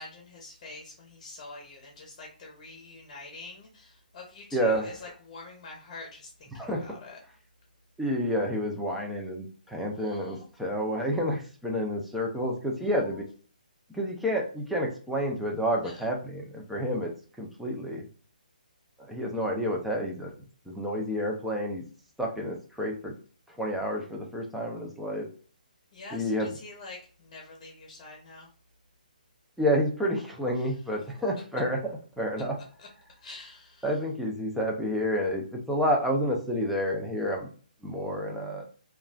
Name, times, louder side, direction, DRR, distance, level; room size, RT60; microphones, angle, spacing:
voice 1, 0.0-7.2 9.9-10.5 12.8-13.2 15.8-16.1 25.9-28.5 30.6-30.7 32.8-32.9 33.2-33.9, left 3 dB, 30° left, -1 dB, 0.8 m, -46 dB
voice 2, 4.5-5.0 6.5-6.9 8.0-13.2 13.9-17.1 17.4-18.0 19.1-20.3 20.7-21.8 22.2-23.1 23.6-25.3 26.1-26.5 29.6-31.8 32.2-32.6 33.8-37.5 37.8-38.6, equal, ahead, -1 dB, 0.4 m, -29 dB
2.4 x 2.3 x 3.2 m, 0.41 s
hypercardioid pair, 160°, 5 cm